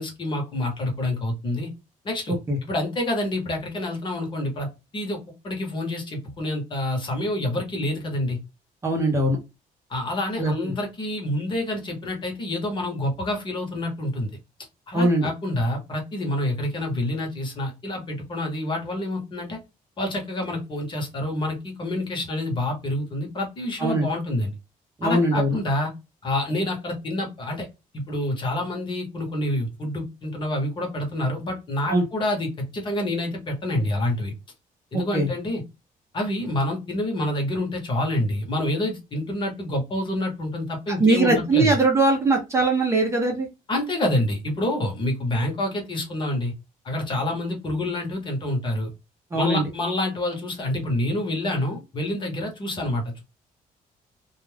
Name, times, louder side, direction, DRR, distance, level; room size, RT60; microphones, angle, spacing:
voice 1, 0.0-1.7 2.0-2.4 2.6-4.7 4.9-8.4 9.9-14.3 14.9-19.6 20.0-24.5 25.0-25.9 26.2-27.7 27.9-34.3 34.9-35.6 36.1-41.7 43.7-46.5 46.8-48.9 49.3-53.2, left 1 dB, 35° left, 2 dB, 1.0 m, -27 dB
voice 2, 8.8-9.4 10.4-10.5 14.9-15.3 23.8-24.1 25.0-25.6 31.9-32.0 34.9-35.3 41.0-43.5 49.3-49.7, right 2 dB, 20° right, 1 dB, 0.6 m, -21 dB
2.3 x 2.3 x 3.2 m, 0.25 s
cardioid pair, 165°, 15 cm